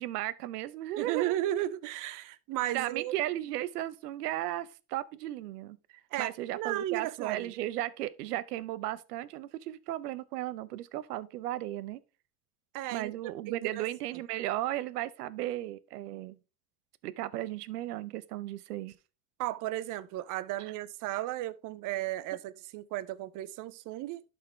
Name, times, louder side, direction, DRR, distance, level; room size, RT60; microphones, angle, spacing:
voice 1, 0.0-1.4 2.7-5.8 6.2-12.0 12.9-16.4 17.0-18.9 20.6-20.7, right 14 dB, 80° right, 0.7 m, -35 dB
voice 2, 1.0-3.1 6.1-7.5 12.7-13.9 19.4-24.2, right 14 dB, 45° right, 0.6 m, -35 dB
11.5 x 4.3 x 3.2 m
hypercardioid pair, 100°, 46 cm